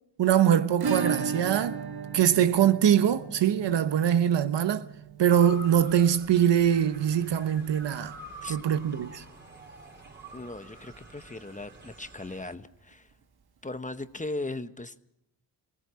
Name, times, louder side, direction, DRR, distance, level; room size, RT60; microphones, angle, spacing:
voice 1, 0.2-1.8 2.1-4.9 5.2-8.1 8.5-9.2, right 9 dB, 70° right, 1.1 m, -23 dB
Acoustic guitar / Strum, 0.8-9.4 9.7-9.8 10.0-10.1 10.5-10.6 12.7-12.8 13.9-14.0, right 5 dB, 55° right, 1.4 m, -37 dB
Motor vehicle (road) / Siren, 5.3-12.6, right 2 dB, 25° right, 4.3 m, -47 dB
voice 2, 10.3-13.1 13.6-15.0, left 2 dB, 15° left, 1.0 m, -38 dB
24.0 x 17.5 x 6.3 m
cardioid pair, 80°, 44 cm